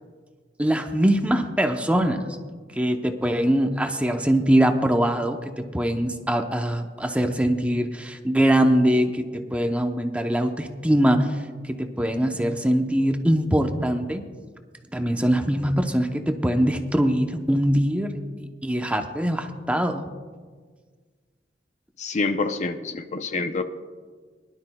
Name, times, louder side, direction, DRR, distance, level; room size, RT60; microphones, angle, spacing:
voice 1, 0.6-2.4 2.7-11.4 11.6-14.2 14.9-20.1, right 1 dB, 5° right, 5 dB, 0.6 m, -22 dB
voice 2, 22.0-23.6, left 3 dB, 40° left, 8 dB, 0.6 m, -27 dB
21.5 x 12.0 x 2.2 m, 1.5 s
head